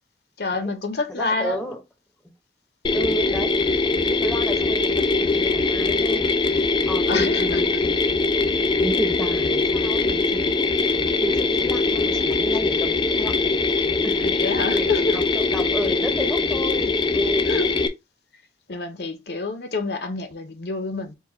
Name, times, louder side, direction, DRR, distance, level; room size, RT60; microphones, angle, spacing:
voice 1, 0.4-1.7 7.1-7.6 14.2-15.2 17.5-17.7 18.7-21.1, left 3 dB, 60° left, 0.7 m, -27 dB
voice 2, 1.2-1.8 2.9-3.5 4.0-6.3 6.9-8.1 8.8-10.5 10.8-14.2 14.4-17.5, right 1 dB, 5° left, 0.7 m, -32 dB
Mechanisms, 2.8-17.9, left 3 dB, 25° left, 0.3 m, -22 dB
4.7 x 2.2 x 4.3 m
head